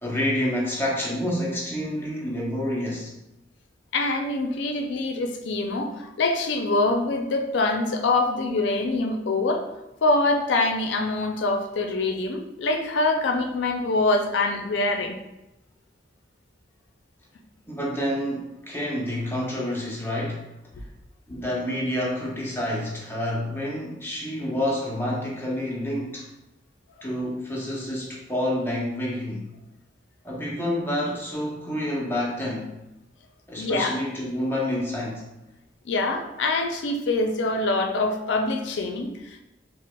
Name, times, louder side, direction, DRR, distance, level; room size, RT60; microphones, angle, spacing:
voice 1, 0.0-3.1 17.7-20.5 21.3-26.3 27.0-29.5 30.2-32.7 33.5-35.2, left 1 dB, 10° left, -4 dB, 0.6 m, -28 dB
voice 2, 3.9-9.6 10.0-15.2 33.6-33.9 35.8-39.4, left 2 dB, 75° left, 4 dB, 0.4 m, -24 dB
4.5 x 2.0 x 2.3 m, 0.94 s
head